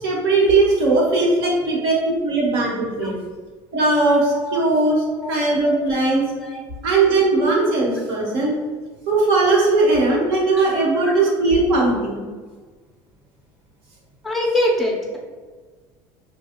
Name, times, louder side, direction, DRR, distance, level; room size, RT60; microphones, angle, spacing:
voice 1, 0.0-3.1 3.7-6.2 6.8-8.5 9.1-12.2, right 2 dB, 60° right, -3 dB, 1.3 m, -19 dB
voice 2, 14.2-15.2, left 1 dB, ahead, -1 dB, 0.6 m, -24 dB
5.1 x 2.3 x 2.9 m, 1.4 s
cardioid pair, 160°, 10 cm